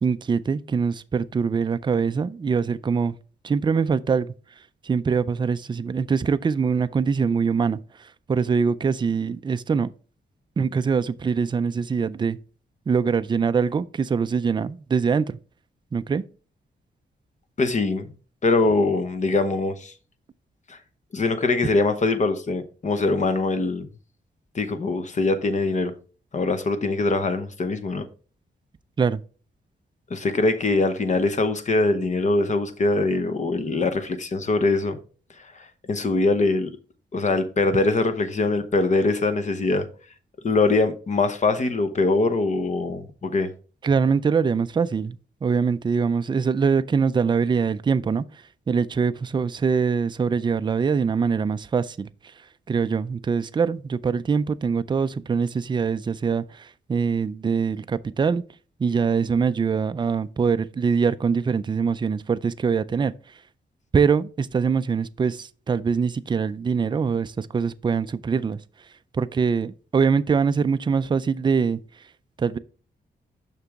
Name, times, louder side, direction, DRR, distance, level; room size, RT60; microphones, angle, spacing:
voice 1, 0.0-3.1 3.4-4.3 4.9-7.8 8.3-9.9 10.6-12.4 12.9-15.4 15.9-16.2 29.0-29.2 43.8-45.1 45.4-48.2 48.7-52.1 52.7-56.4 56.9-58.4 58.8-63.1 63.9-68.6 69.2-71.8 72.4-72.6, right 5 dB, 25° right, 0.3 m, -23 dB
voice 2, 17.6-18.1 18.4-19.9 20.7-20.8 21.1-23.9 24.5-25.9 26.3-28.1 30.1-35.0 35.6-36.7 37.1-39.9 40.4-43.5, left 3 dB, 40° left, 0.8 m, -23 dB
6.7 x 6.0 x 3.5 m
wide cardioid pair, 150°, 19 cm